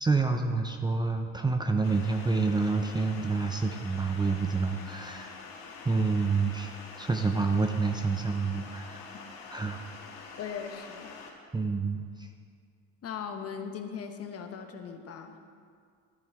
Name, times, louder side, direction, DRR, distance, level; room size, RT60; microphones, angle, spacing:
voice 1, 0.0-5.4 5.8-9.0 9.5-9.8 11.5-12.3, right 4 dB, 10° right, 5 dB, 0.6 m, -28 dB
sound 1, 1.8-11.3, left 4 dB, 75° left, 1.6 m, -46 dB
voice 2, 10.4-11.1 13.0-15.3, left 7 dB, 40° left, 6 dB, 1.1 m, -39 dB
13.5 x 8.8 x 3.6 m, 2.1 s
supercardioid pair, 85°, 36 cm